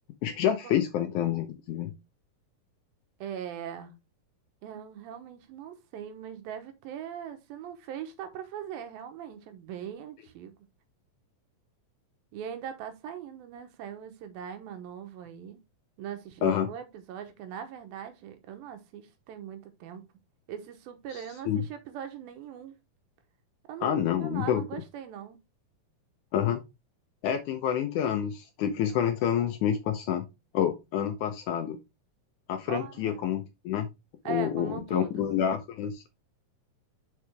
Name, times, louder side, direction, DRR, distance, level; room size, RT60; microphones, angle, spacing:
voice 1, 0.2-1.9 16.4-16.7 21.1-21.6 23.8-24.6 26.3-26.6 27.2-30.2 30.5-31.8 32.5-33.9 34.3-36.1, left 9 dB, 75° left, 1.8 m, -28 dB
voice 2, 3.2-3.9 4.6-10.5 12.3-15.6 16.0-20.0 20.5-22.7 23.7-25.4 32.7-33.3 34.2-35.5, right 9 dB, 90° right, 2.8 m, -40 dB
6.7 x 4.8 x 3.3 m
omnidirectional pair, 4.1 m